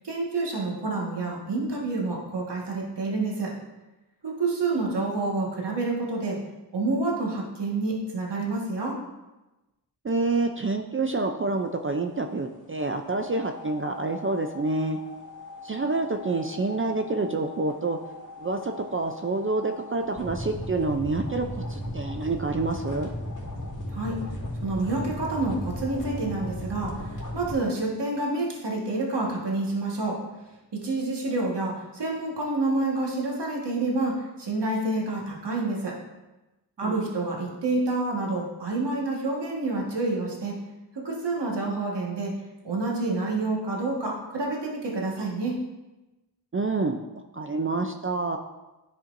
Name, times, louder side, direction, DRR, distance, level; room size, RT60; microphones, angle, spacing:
voice 1, 0.0-3.5 4.2-6.4 6.7-8.9 23.9-24.2 24.6-27.0 27.3-30.2 30.8-35.9 36.8-40.5 40.9-42.3 42.6-45.5, right 2 dB, 70° right, -2 dB, 1.6 m, -28 dB
voice 2, 10.0-15.0 15.6-18.0 18.4-23.1 36.8-37.0 46.5-47.0 47.3-48.4, right 3 dB, 30° right, 5 dB, 0.4 m, -27 dB
sound 1, 13.1-27.5, left 1 dB, 45° left, 2.2 m, -37 dB
11.0 x 4.4 x 2.6 m, 1.0 s
wide cardioid pair, 75°, 42 cm